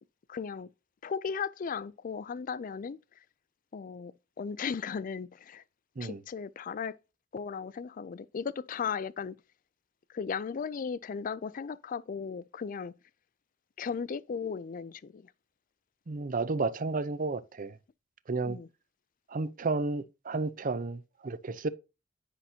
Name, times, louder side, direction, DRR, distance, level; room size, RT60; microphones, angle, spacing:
voice 1, 0.3-0.7 1.0-3.0 3.7-5.6 6.0-7.0 7.3-9.4 10.1-12.9 13.8-15.3 18.4-18.7, left 6 dB, 45° left, 0.4 m, -36 dB
voice 2, 16.1-17.8 18.3-18.6 19.3-21.7, right 3 dB, 45° right, 0.6 m, -32 dB
10.0 x 5.7 x 2.8 m
head